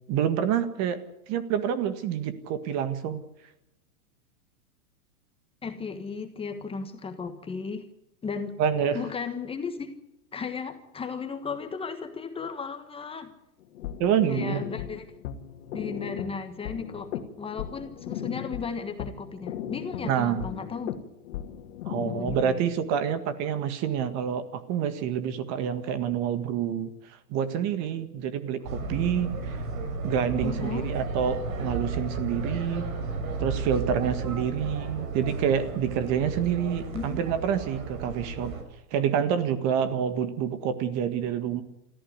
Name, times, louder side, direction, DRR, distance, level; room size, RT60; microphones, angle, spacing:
voice 1, 0.1-1.0 1.3-3.2 8.6-9.0 14.0-14.6 20.0-20.4 21.9-29.6 30.0-32.9 33.4-38.5 38.9-41.6, right 8 dB, 35° right, 11 dB, 1.7 m, -27 dB
voice 2, 5.6-7.9 8.2-8.5 8.9-10.0 10.3-13.3 14.3-15.1 15.7-20.9 22.0-22.6 30.4-30.9 36.9-37.2, left 5 dB, 10° left, 6 dB, 1.4 m, -35 dB
sound 1, 13.6-22.7, left 10 dB, 60° left, 2.2 m, -37 dB
sound 2, 28.6-38.6, right 3 dB, 65° right, 6.0 m, -33 dB
26.0 x 14.5 x 9.6 m, 0.88 s
hypercardioid pair, 145°, 44 cm